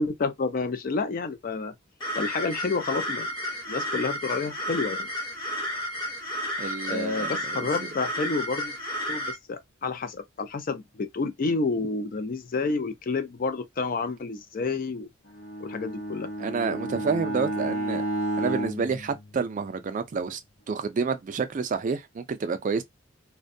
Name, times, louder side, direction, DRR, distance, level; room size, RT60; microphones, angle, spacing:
voice 1, 0.0-1.7 2.1-5.1 6.9-8.7 9.1-15.1 15.6-16.3, left 4 dB, 45° left, 0.4 m, -29 dB
sound 1, 2.0-9.3, equal, 25° left, 0.8 m, -32 dB
voice 2, 6.6-7.7 16.4-18.0 18.4-20.4 20.7-22.8, right 5 dB, 40° right, 0.3 m, -29 dB
Bowed string instrument, 15.3-19.9, right 1 dB, 90° left, 0.8 m, -32 dB
2.5 x 2.2 x 2.5 m
head